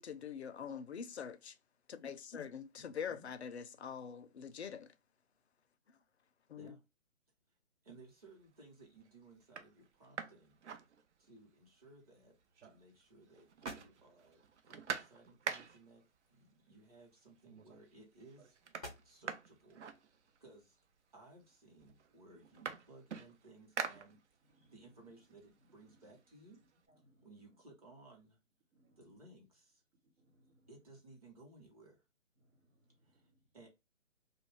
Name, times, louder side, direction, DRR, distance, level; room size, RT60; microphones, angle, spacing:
voice 1, 0.0-1.6 1.9-4.9 6.5-6.7, left 7 dB, 55° left, 0.5 m, -44 dB
voice 2, 2.7-3.3 6.5-6.8 7.8-10.6 11.2-12.4 12.6-20.8 21.1-26.6 27.2-28.4 29.0-29.8 30.7-32.0 33.0-33.7, right 2 dB, 30° right, 0.9 m, -60 dB
sound 1, 8.0-8.5 9.0-9.1 9.4-11.5 11.8-11.9 12.2-13.0 13.3-16.0 17.0-17.1 17.4-17.9 18.2-20.6 21.4-21.5 21.8-24.6 25.0-26.8, right 6 dB, 60° right, 0.5 m, -46 dB
sound 2, 12.2-21.6, left 1 dB, 5° right, 0.5 m, -59 dB
voice 3, 24.4-25.0 25.9-26.2 26.9-27.6 28.7-29.0 30.0-30.7 32.4-33.5, right 1 dB, 75° right, 1.2 m, -71 dB
2.7 x 2.3 x 3.3 m
figure-of-eight pair, 155°, 40 cm